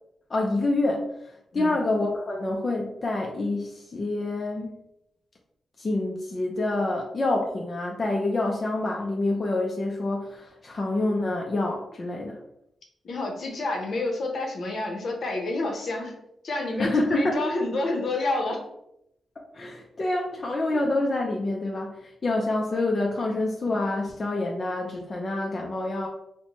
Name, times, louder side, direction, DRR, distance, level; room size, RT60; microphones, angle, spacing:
voice 1, 0.3-4.8 5.8-12.4 16.8-17.4 19.4-26.1, left 2 dB, 40° left, -1 dB, 0.5 m, -27 dB
voice 2, 13.0-16.1 16.4-18.6, left 2 dB, 65° left, 1 dB, 0.8 m, -29 dB
4.2 x 2.1 x 2.9 m, 0.79 s
cardioid pair, 80°, 0 cm